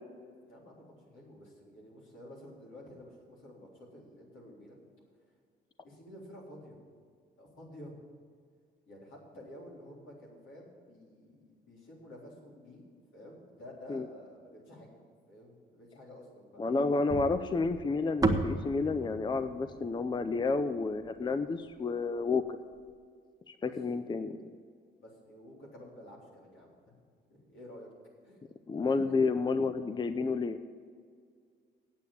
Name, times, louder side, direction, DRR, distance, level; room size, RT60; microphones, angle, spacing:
voice 1, 0.4-4.8 5.8-6.8 7.4-7.9 8.9-12.9 13.1-14.9 15.3-16.6 23.6-23.8 25.0-27.0 27.3-27.9 28.2-28.4 28.9-29.0, left 1 dB, 75° left, -3 dB, 3.7 m, -51 dB
voice 2, 16.6-22.4 23.5-24.4 28.7-30.6, left 4 dB, 25° left, 10 dB, 0.5 m, -30 dB
sound 1, 17.1-21.4, right 2 dB, 20° right, 1.1 m, -34 dB
8.3 x 8.3 x 8.6 m, 2.1 s
cardioid pair, 90°, 20 cm